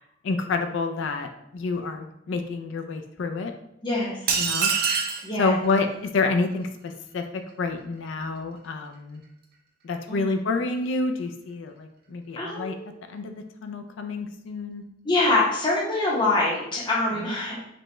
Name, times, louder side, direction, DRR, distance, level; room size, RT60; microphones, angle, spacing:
voice 1, 0.2-3.5 4.4-4.7 5.4-9.2 9.8-12.8 13.1-13.3 13.6-14.8 17.1-17.4, left 3 dB, 70° left, 6 dB, 0.4 m, -28 dB
voice 2, 3.8-4.2 5.2-5.6 10.1-10.3 12.4-12.9 15.0-17.6, left 2 dB, 25° left, -5 dB, 0.8 m, -24 dB
sound 1, 4.3-5.3, right 6 dB, 50° right, 0.6 m, -24 dB
5.1 x 2.3 x 3.0 m, 0.82 s
head